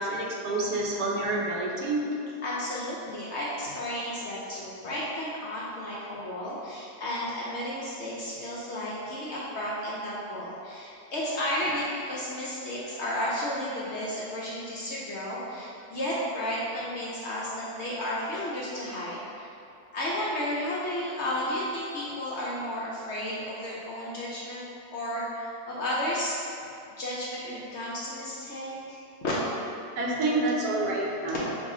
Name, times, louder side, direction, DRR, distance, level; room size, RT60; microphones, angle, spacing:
voice 1, 0.0-2.1 30.0-31.5, right 2 dB, 80° right, -2 dB, 1.2 m, -28 dB
voice 2, 2.4-19.5 19.9-24.6 24.9-29.3, left 1 dB, 60° left, -6 dB, 0.7 m, -33 dB
5.6 x 2.4 x 3.7 m, 2.6 s
omnidirectional pair, 1.7 m